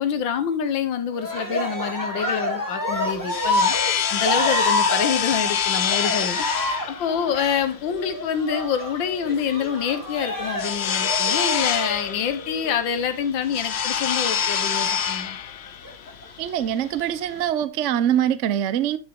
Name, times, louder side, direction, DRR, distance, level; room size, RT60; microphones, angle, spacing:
voice 1, 0.0-6.4 6.7-15.4, left 7 dB, 90° left, 1.8 m, -26 dB
Cheering, 1.1-12.8 14.1-14.9 15.7-16.3, left 1 dB, 10° left, 2.2 m, -28 dB
sound 1, 2.9-17.5, left 8 dB, 65° left, 0.6 m, -26 dB
voice 2, 16.4-19.0, right 10 dB, 60° right, 0.7 m, -23 dB
11.5 x 6.8 x 3.6 m
omnidirectional pair, 2.0 m